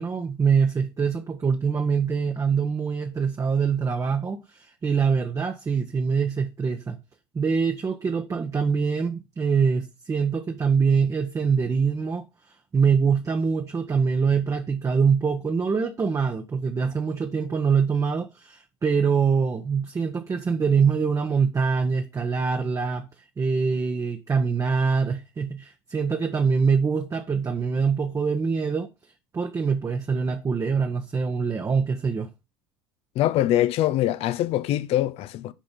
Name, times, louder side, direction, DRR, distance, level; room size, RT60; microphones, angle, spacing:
voice 1, 0.0-7.0 7.3-12.3 12.7-23.1 23.4-28.9 29.3-32.3, right 5 dB, 25° right, 1.1 m, -24 dB
voice 2, 33.2-35.5, left 13 dB, 50° left, 0.8 m, -23 dB
7.6 x 5.2 x 5.2 m
figure-of-eight pair, 65°, 13 cm